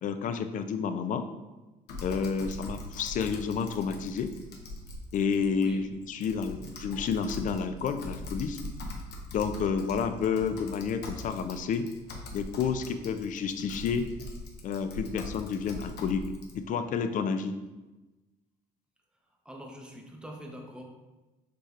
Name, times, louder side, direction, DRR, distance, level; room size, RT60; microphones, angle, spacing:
voice 1, 0.0-1.3 2.0-4.3 5.1-8.7 9.3-11.9 12.3-14.1 14.6-16.3 16.5-17.5, left 6 dB, 50° left, 9 dB, 0.4 m, -30 dB
Typing, 1.9-16.5, left 1 dB, 75° left, 0.9 m, -42 dB
voice 2, 5.5-5.9 16.8-16.9 19.4-20.9, equal, 5° right, 1 dB, 0.7 m, -44 dB
6.8 x 3.2 x 2.4 m, 1.1 s
cardioid pair, 110°, 17 cm